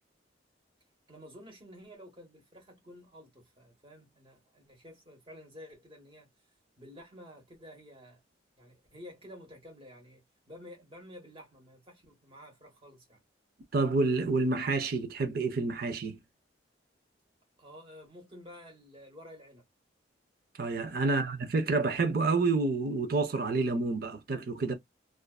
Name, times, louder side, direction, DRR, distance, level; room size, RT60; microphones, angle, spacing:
voice 1, 1.1-6.3 6.8-8.2 8.6-10.2 10.5-13.2 17.6-19.6, left 1 dB, 30° right, 1.2 m, -51 dB
voice 2, 13.7-16.2 20.6-24.7, right 3 dB, 50° right, 0.5 m, -28 dB
2.5 x 2.3 x 2.2 m
head